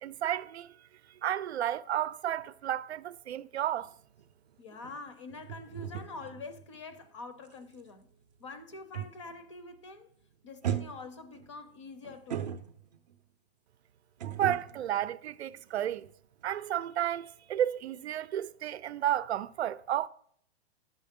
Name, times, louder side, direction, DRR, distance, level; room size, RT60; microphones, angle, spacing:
voice 1, 0.0-0.7 1.2-3.9 14.2-16.1 16.4-20.1, right 11 dB, 80° right, 0.6 m, -32 dB
sound 1, 3.8-9.5 9.8-10.1 10.6-13.1 14.2-16.1 16.4-16.6, right 9 dB, 40° right, 0.6 m, -40 dB
voice 2, 4.6-8.1 8.4-10.1 10.4-12.6, left 3 dB, 30° left, 0.6 m, -45 dB
10.5 x 7.5 x 3.6 m
hypercardioid pair, 180°, 32 cm